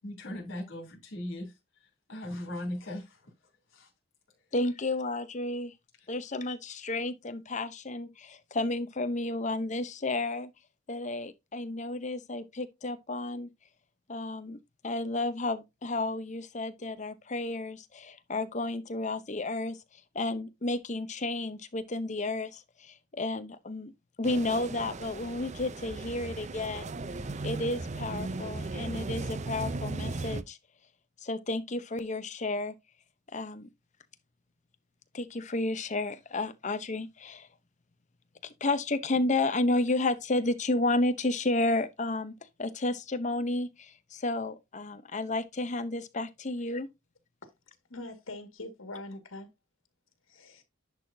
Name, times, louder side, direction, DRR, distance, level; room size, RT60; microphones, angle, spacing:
voice 1, 0.0-1.5 1.8-3.3 3.7-3.9, left 1 dB, 65° left, 3.1 m, -39 dB
voice 2, 4.5-5.7 6.1-10.5 10.9-13.5 14.1-14.6 14.8-19.8 20.1-23.9 24.2-26.9 27.4-30.6 31.2-32.7 33.3-33.7 35.1-37.5 38.4-42.3 42.6-46.9, left 2 dB, 35° left, 0.8 m, -32 dB
sound 1, 24.2-30.4, right 3 dB, 35° right, 0.5 m, -37 dB
voice 3, 47.9-49.5 50.3-50.6, left 2 dB, 80° left, 1.9 m, -43 dB
10.5 x 4.7 x 2.7 m
head